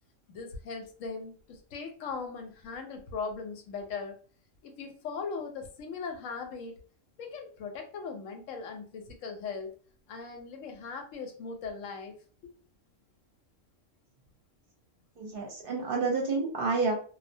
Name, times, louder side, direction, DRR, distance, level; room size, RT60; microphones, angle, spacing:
voice 1, 0.3-4.2 4.6-6.8 7.2-9.7 10.1-12.1 12.4-12.5, left 5 dB, 85° left, 4 dB, 1.0 m, -39 dB
voice 2, 15.2-17.0, right 4 dB, 55° right, -1 dB, 0.8 m, -29 dB
2.2 x 2.1 x 2.6 m, 0.42 s
omnidirectional pair, 1.3 m